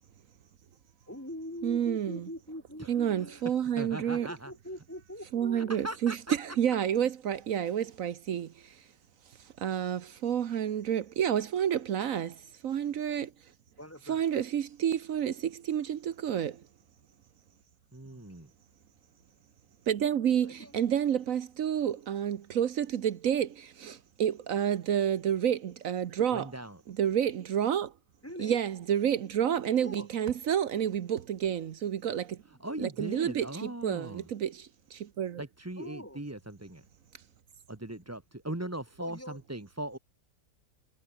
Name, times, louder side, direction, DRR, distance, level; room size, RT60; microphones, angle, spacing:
voice 1, 1.1-3.4 4.3-5.7 13.8-14.4 18.1-18.5 20.4-20.7 28.2-28.6 29.8-30.1 35.8-36.2 39.0-39.4, equal, 10° left, 3.1 m, -43 dB
voice 2, 1.6-2.2 2.9-4.3 5.3-8.8 9.6-13.3 14.1-16.6 19.9-26.5 26.9-27.9 28.4-32.4 32.8-35.4, right 9 dB, 75° right, 1.3 m, -29 dB
voice 3, 2.8-4.5 5.5-6.4 17.9-18.5 26.3-26.8 32.5-34.3 35.4-36.9 37.7-40.0, right 1 dB, 10° right, 1.3 m, -40 dB
omnidirectional pair, 1.5 m